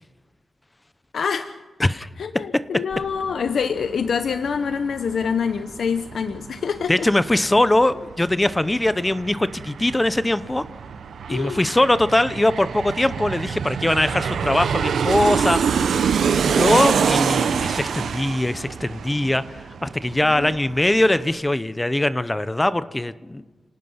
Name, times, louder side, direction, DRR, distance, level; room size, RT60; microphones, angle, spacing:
voice 1, 1.1-1.5 2.2-7.1 11.3-11.6 20.2-20.6, left 6 dB, 70° left, 8 dB, 1.0 m, -26 dB
sound 1, 2.9-21.3, right 5 dB, 65° right, 1.5 m, -44 dB
voice 2, 6.9-10.6 11.3-15.8 16.4-23.4, left 1 dB, 15° left, 14 dB, 0.7 m, -21 dB
Aircraft, 8.3-8.4 8.7-20.0 20.3-20.4, right 7 dB, 85° right, 0.9 m, -24 dB
29.5 x 18.5 x 5.7 m, 1.2 s
wide cardioid pair, 125°, 0 cm